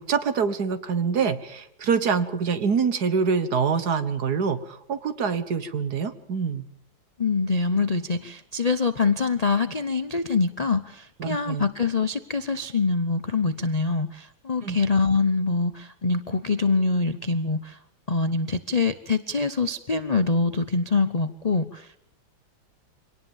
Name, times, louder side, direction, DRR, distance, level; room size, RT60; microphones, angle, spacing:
voice 1, 0.0-6.7 11.2-11.7 14.6-14.8, right 6 dB, 55° right, 12 dB, 1.8 m, -25 dB
voice 2, 7.2-17.8 18.1-22.0, left 4 dB, 50° left, 11 dB, 0.4 m, -24 dB
25.0 x 18.5 x 7.2 m, 0.72 s
omnidirectional pair, 2.1 m